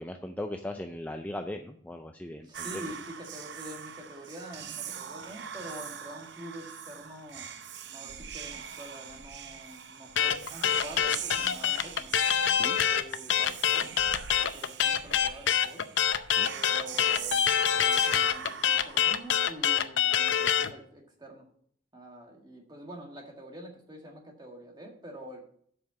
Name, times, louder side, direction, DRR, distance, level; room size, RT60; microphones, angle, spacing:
voice 1, 0.0-2.9 12.6-12.8 16.4-16.5, left 1 dB, 10° left, 5 dB, 0.4 m, -38 dB
voice 2, 2.4-7.5 7.9-12.1 12.6-13.9 14.4-15.9 16.5-17.4 17.7-21.5 21.9-25.5, right 1 dB, 20° right, 1 dB, 1.7 m, -46 dB
Whispering, 2.5-19.7, right 8 dB, 60° right, 0.7 m, -42 dB
sound 1, 10.2-20.7, left 9 dB, 70° left, 0.6 m, -25 dB
7.7 x 5.6 x 7.1 m, 0.63 s
head